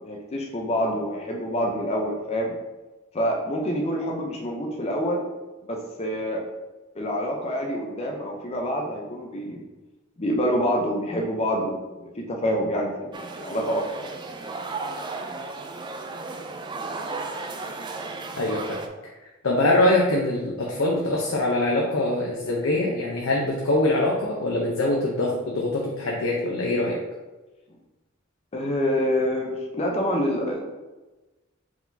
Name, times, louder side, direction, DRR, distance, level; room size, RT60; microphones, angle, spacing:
voice 1, 0.0-2.5 3.1-5.2 5.7-6.4 7.0-9.6 10.2-13.9 28.5-30.6, equal, 30° left, 0 dB, 0.6 m, -26 dB
sound 1, 13.1-18.9, right 3 dB, 20° right, 0.3 m, -34 dB
voice 2, 18.4-18.8 19.4-27.0, left 1 dB, 85° left, -3 dB, 0.7 m, -23 dB
4.7 x 3.8 x 2.7 m, 1.1 s
head